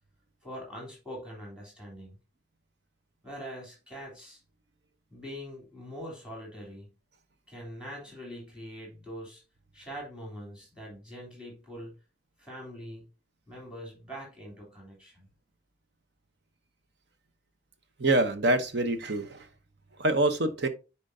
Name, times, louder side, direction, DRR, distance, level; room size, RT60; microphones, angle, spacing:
voice 1, 0.4-2.2 3.2-4.4 5.1-6.9 7.5-9.4 9.7-11.9 12.4-13.0 13.5-15.3, equal, 5° right, 3.2 m, -43 dB
voice 2, 18.0-19.5 20.0-20.7, right 2 dB, 60° right, 0.9 m, -25 dB
10.0 x 4.4 x 2.7 m
head